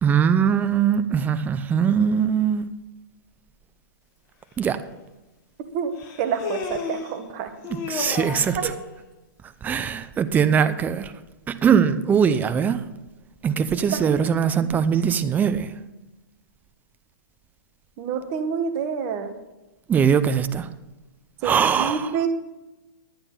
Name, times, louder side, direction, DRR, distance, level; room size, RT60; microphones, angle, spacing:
voice 1, 0.0-2.6 4.6-4.8 7.9-8.7 9.6-11.1 11.5-12.8 13.4-15.7 19.9-20.7 21.4-22.1, right 7 dB, 15° right, 0.6 m, -21 dB
Human voice, 4.6-4.7 6.0-7.2 7.6-8.6, left 5 dB, 35° left, 1.8 m, -32 dB
voice 2, 6.2-7.5 8.5-8.7 14.1-14.2 14.6-14.9 18.0-19.3 21.4-22.3, right 7 dB, 40° right, 1.4 m, -28 dB
11.0 x 9.0 x 5.6 m
hypercardioid pair, 135°, 11 cm